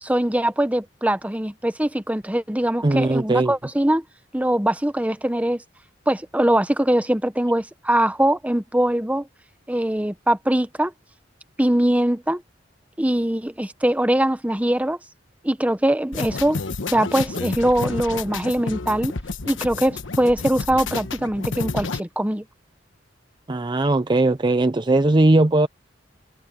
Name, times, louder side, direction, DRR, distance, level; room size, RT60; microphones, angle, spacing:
voice 1, 0.0-4.0 4.3-5.6 6.1-9.3 9.7-10.9 11.6-12.4 13.0-15.0 15.4-16.6 16.9-19.1 19.4-22.4, right 1 dB, 10° right, 1.0 m, -22 dB
voice 2, 2.8-3.5 23.5-25.7, right 2 dB, 25° right, 0.5 m, -19 dB
sound 1, 16.1-22.0, left 4 dB, 85° left, 1.2 m, -30 dB
head